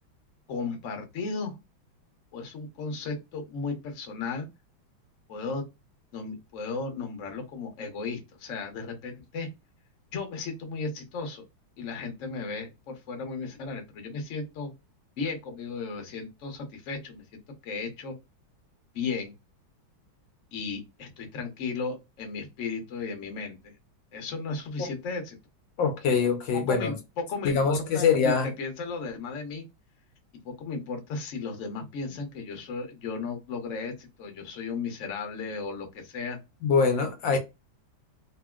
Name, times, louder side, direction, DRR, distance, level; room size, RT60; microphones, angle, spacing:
voice 1, 0.5-1.5 2.3-4.5 5.3-5.6 6.1-9.5 10.1-11.4 11.8-14.7 15.2-18.1 18.9-19.3 20.5-23.7 24.1-25.4 26.1-26.2 26.5-27.0 27.3-29.6 30.4-36.4 37.3-37.4, left 4 dB, 55° left, 0.9 m, -35 dB
voice 2, 25.8-26.9 27.4-28.5 36.6-37.4, left 5 dB, 75° left, 1.3 m, -24 dB
3.0 x 2.6 x 2.3 m
omnidirectional pair, 2.2 m